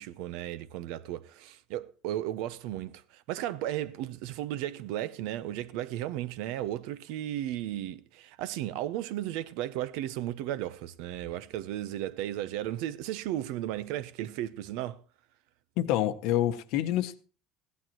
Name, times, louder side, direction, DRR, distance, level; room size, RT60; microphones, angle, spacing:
voice 1, 0.0-15.0, right 13 dB, 65° right, 0.7 m, -35 dB
voice 2, 15.8-17.2, left 13 dB, 55° left, 0.9 m, -27 dB
16.0 x 11.5 x 3.0 m
cardioid pair, 165°, 0 cm